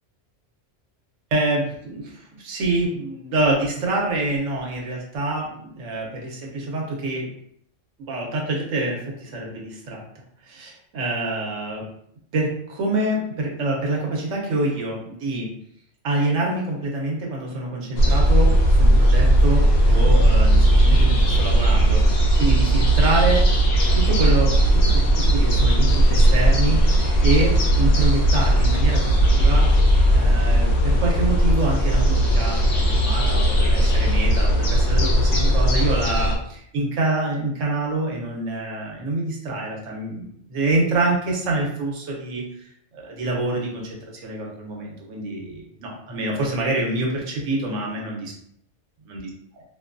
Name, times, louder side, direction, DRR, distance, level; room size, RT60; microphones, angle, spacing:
voice 1, 1.3-7.3 8.0-10.0 10.5-11.8 12.3-15.5 16.0-23.4 23.9-29.7 30.1-42.4 42.9-48.3 49.1-49.6, right 2 dB, 80° right, -2 dB, 1.1 m, -26 dB
sound 1, 18.0-36.4, right 1 dB, 65° left, 0.8 m, -17 dB
2.6 x 2.2 x 2.5 m, 0.67 s
omnidirectional pair, 1.3 m